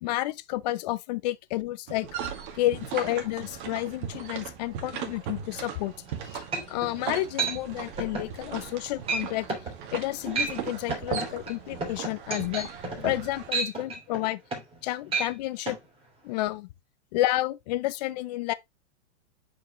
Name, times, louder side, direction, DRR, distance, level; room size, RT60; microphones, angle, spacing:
voice 1, 0.0-2.1 2.5-5.9 6.3-9.5 9.9-12.7 13.0-14.4 14.8-15.8 16.2-16.7 17.1-18.5, left 16 dB, 40° left, 0.5 m, -30 dB
sound 1, 1.9-13.5, right 7 dB, 50° right, 1.9 m, -38 dB
sound 2, 6.1-6.2 6.5-6.9 7.4-7.6 8.0-8.3 8.7-8.8 9.1-9.2 9.5-9.7 10.2-10.6 10.9-14.8 15.1-15.3 15.7-15.8, right 4 dB, 15° right, 2.9 m, -31 dB
8.3 x 4.8 x 3.0 m
supercardioid pair, 160°, 34 cm